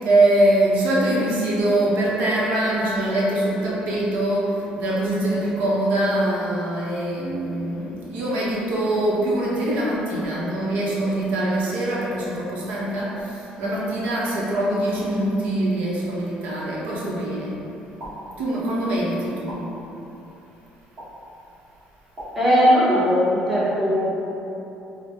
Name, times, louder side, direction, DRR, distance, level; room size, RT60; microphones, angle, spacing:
voice 1, 0.0-17.6 18.4-19.7, right 1 dB, 65° right, -6 dB, 0.8 m, -23 dB
sound 1, 18.0-18.1 19.5-19.6 21.0-21.1 22.1-22.3, right 1 dB, 20° right, 1.5 m, -37 dB
voice 2, 22.3-24.2, equal, 5° right, -10 dB, 0.9 m, -19 dB
4.9 x 2.1 x 4.2 m, 3.0 s
cardioid pair, 180°, 3 cm